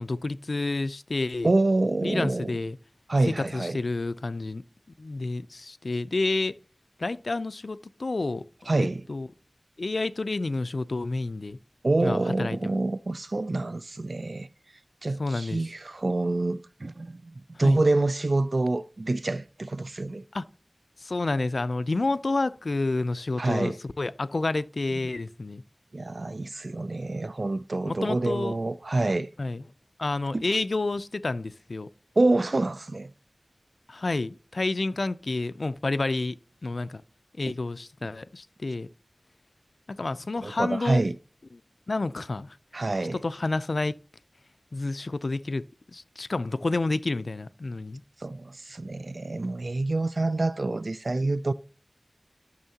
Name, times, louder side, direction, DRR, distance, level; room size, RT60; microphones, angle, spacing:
voice 1, 0.0-1.5 2.0-2.8 3.3-4.6 5.0-6.6 7.0-9.3 9.8-11.6 12.0-12.7 15.2-15.6 17.6-17.8 20.3-20.4 21.0-25.6 27.8-28.6 29.4-29.6 30.0-31.9 33.9-37.0 37.4-38.9 39.9-41.0 41.5-41.6 41.9-42.6 43.1-44.0 44.7-45.6 45.9-48.0, left 2 dB, 90° left, 0.4 m, -29 dB
voice 2, 1.4-2.6 3.1-3.8 8.7-9.0 11.8-14.5 15.0-20.2 23.4-23.8 25.9-29.3 30.3-30.4 32.2-33.1 40.4-41.1 42.7-43.2 48.2-51.5, right 2 dB, 75° right, 0.3 m, -27 dB
12.5 x 6.4 x 2.8 m
wide cardioid pair, 45°, 0 cm